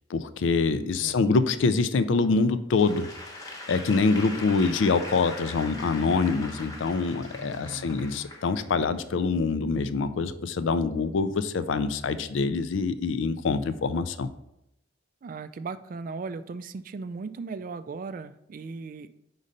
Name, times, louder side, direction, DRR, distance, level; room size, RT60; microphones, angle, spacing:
voice 1, 0.1-3.1 3.7-14.3, left 4 dB, 80° left, 12 dB, 0.4 m, -25 dB
voice 2, 1.0-1.4 7.4-8.0 15.2-19.1, right 4 dB, 45° right, 12 dB, 0.3 m, -37 dB
Applause / Crowd, 2.7-9.1, left 2 dB, 15° left, 0.9 m, -41 dB
5.3 x 4.0 x 5.1 m, 0.83 s
head